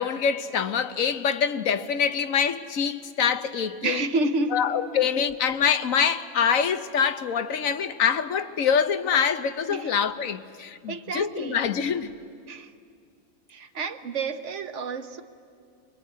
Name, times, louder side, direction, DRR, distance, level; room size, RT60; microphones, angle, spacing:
voice 1, 0.0-4.1 4.5-12.1, left 7 dB, 75° left, 1.3 m, -25 dB
voice 2, 3.8-4.6 9.7-9.9 10.9-11.7 12.5-12.7 13.5-15.2, right 3 dB, 60° right, 1.3 m, -29 dB
25.5 x 22.5 x 9.4 m
omnidirectional pair, 1.4 m